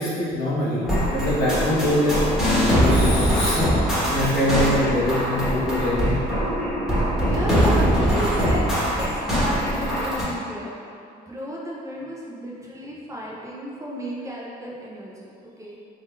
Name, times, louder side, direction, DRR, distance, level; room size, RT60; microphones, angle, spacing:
voice 1, 0.0-2.2 2.7-6.2, left 1 dB, 80° left, -9 dB, 1.3 m, -24 dB
sound 1, 0.8-10.2, equal, ahead, 1.4 m, -22 dB
voice 2, 7.2-8.7 9.0-15.8, equal, 20° right, -5 dB, 0.7 m, -33 dB
3.8 x 3.6 x 2.6 m, 2.5 s
cardioid pair, 110°, 17 cm